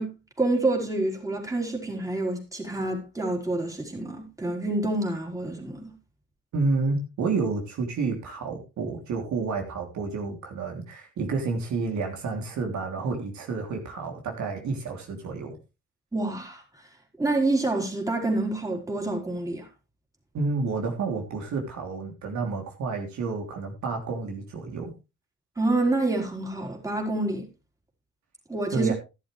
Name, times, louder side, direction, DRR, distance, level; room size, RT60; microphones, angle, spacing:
voice 1, 0.0-5.9 16.1-16.6 17.2-19.7 25.6-27.5 28.5-28.9, right 2 dB, 10° right, 4.4 m, -27 dB
voice 2, 6.5-15.6 20.3-24.9 28.7-28.9, right 4 dB, 70° right, 3.2 m, -30 dB
12.5 x 11.5 x 3.3 m
cardioid pair, 90°, 30 cm